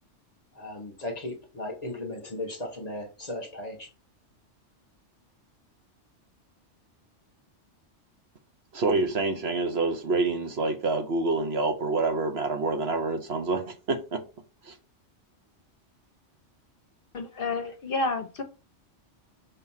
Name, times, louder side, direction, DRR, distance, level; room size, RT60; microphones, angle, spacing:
voice 1, 0.5-3.9, left 1 dB, 35° left, 1.3 m, -36 dB
voice 2, 8.7-14.2 14.6-14.7, right 3 dB, 60° right, 1.2 m, -27 dB
voice 3, 17.1-18.4, left 3 dB, 55° left, 0.9 m, -30 dB
5.6 x 3.1 x 5.6 m
omnidirectional pair, 1.2 m